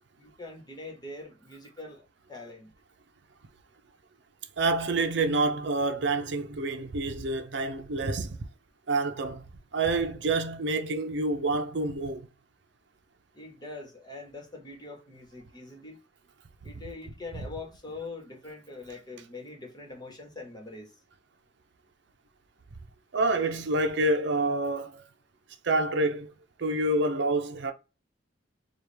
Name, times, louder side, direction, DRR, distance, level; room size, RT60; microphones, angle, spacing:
voice 1, 0.2-2.0 2.3-2.7 13.3-16.0 16.6-20.9, left 3 dB, 25° left, 1.4 m, -43 dB
voice 2, 4.6-8.5 8.9-9.4 9.7-12.3 23.1-25.0 25.6-26.3 26.6-27.7, right 2 dB, 65° right, 0.6 m, -27 dB
4.8 x 2.4 x 3.4 m
head